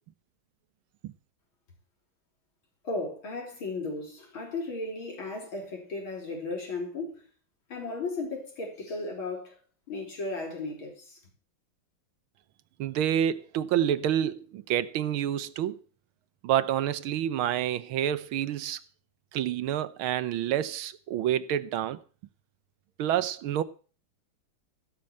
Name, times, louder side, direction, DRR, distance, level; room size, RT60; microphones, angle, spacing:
voice 1, 2.8-7.2 7.7-9.6 9.9-11.2, left 3 dB, 70° left, 5.1 m, -35 dB
voice 2, 12.8-15.8 16.4-18.8 19.3-22.0 23.0-23.6, right 10 dB, 75° right, 1.6 m, -28 dB
16.0 x 6.0 x 8.6 m
omnidirectional pair, 2.3 m